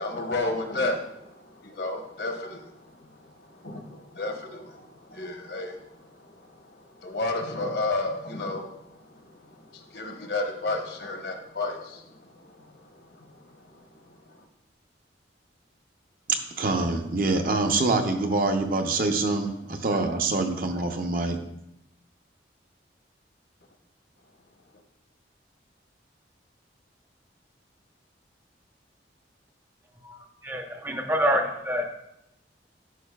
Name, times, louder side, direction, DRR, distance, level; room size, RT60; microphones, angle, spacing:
voice 1, 0.0-14.1, left 2 dB, 65° left, 4 dB, 1.0 m, -33 dB
voice 2, 16.6-21.4, right 3 dB, 50° right, 5 dB, 0.7 m, -25 dB
voice 3, 30.4-31.9, equal, 15° right, 4 dB, 0.5 m, -26 dB
11.0 x 5.5 x 2.3 m, 0.83 s
head